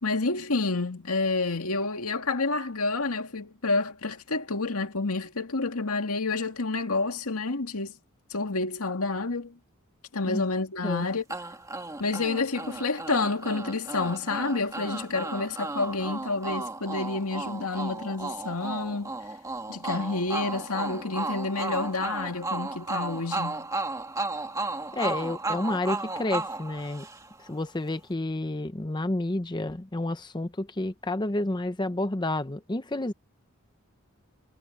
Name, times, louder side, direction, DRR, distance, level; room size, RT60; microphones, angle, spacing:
voice 1, 0.0-7.9 8.3-9.6 10.1-11.2 12.0-19.1 19.7-23.7, left 3 dB, 85° left, 2.2 m, -29 dB
sound 1, 11.3-27.5, right 2 dB, 15° right, 1.9 m, -34 dB
voice 2, 24.9-27.1 27.4-33.1, left 2 dB, 20° left, 0.7 m, -30 dB
head